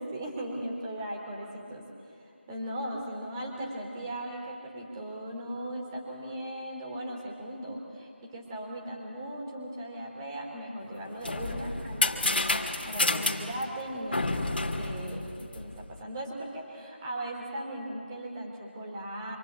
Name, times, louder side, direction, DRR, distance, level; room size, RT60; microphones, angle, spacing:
voice 1, 0.0-1.8 2.2-14.5 14.7-19.4, right 1 dB, 20° right, -1 dB, 4.0 m, -38 dB
sound 1, 10.9-15.9, left 2 dB, 55° left, 2.4 m, -30 dB
26.5 x 25.0 x 8.6 m, 2.4 s
figure-of-eight pair, 165°, 6 cm